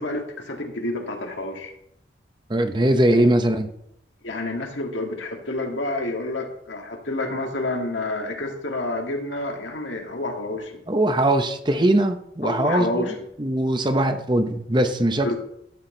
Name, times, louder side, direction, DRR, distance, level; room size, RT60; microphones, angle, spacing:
voice 1, 0.0-1.7 3.1-3.3 4.2-10.8 12.4-13.2 15.2-15.4, left 2 dB, 85° left, 2 dB, 2.0 m, -29 dB
voice 2, 2.5-3.7 10.9-13.1 13.4-15.3, right 1 dB, 25° right, 7 dB, 0.8 m, -21 dB
13.0 x 8.0 x 3.9 m, 0.74 s
head